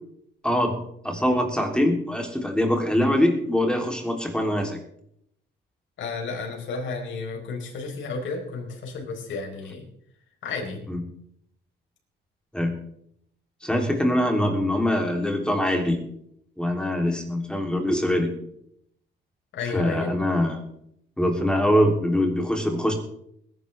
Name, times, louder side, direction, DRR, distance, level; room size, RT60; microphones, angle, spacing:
voice 1, 1.0-4.8 10.9-11.0 12.5-12.7 13.6-16.0 16.6-18.3 19.7-20.6 21.2-22.9, left 1 dB, 5° left, 2 dB, 3.2 m, -23 dB
voice 2, 6.0-9.9 10.4-10.8 19.5-20.2, left 4 dB, 75° left, 1 dB, 4.4 m, -32 dB
21.0 x 11.0 x 3.5 m, 0.72 s
cardioid pair, 90°, 20 cm